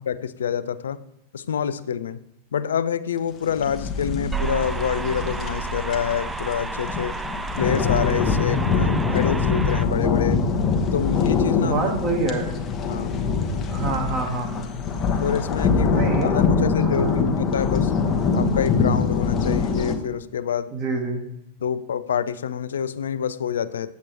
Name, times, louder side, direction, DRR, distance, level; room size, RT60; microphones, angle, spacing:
voice 1, 0.1-1.0 1.3-2.2 2.5-7.2 7.6-10.4 10.9-11.8 12.8-13.2 15.0-17.9 18.3-20.7 21.6-23.9, left 8 dB, 65° left, 16 dB, 0.3 m, -27 dB
sound 1, 3.5-20.0, left 5 dB, 25° left, 0.9 m, -24 dB
sound 2, 4.3-9.8, right 4 dB, 10° right, 0.4 m, -31 dB
voice 2, 11.6-12.5 13.7-14.7 15.8-16.3 16.8-17.2 20.7-21.2, right 3 dB, 35° right, 2 dB, 1.3 m, -26 dB
8.3 x 7.4 x 3.0 m, 0.78 s
figure-of-eight pair, 90°, 0 cm